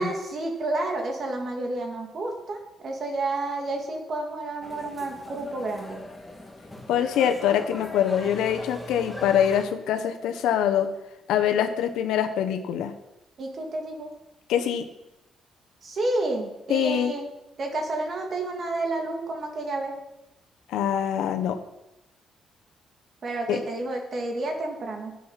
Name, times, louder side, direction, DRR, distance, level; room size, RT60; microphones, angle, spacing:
voice 1, 0.0-6.0 13.4-14.1 15.8-17.2 17.6-19.9 23.2-25.2, right 2 dB, 50° right, 2 dB, 2.6 m, -30 dB
sound 1, 4.6-9.6, left 1 dB, 5° left, 2.2 m, -40 dB
voice 2, 6.9-10.9 11.3-12.9 14.5-14.8 16.7-17.1 20.7-21.6 23.5-23.6, left 9 dB, 90° left, 6 dB, 1.1 m, -24 dB
10.5 x 7.6 x 5.8 m, 0.92 s
cardioid pair, 90°, 0 cm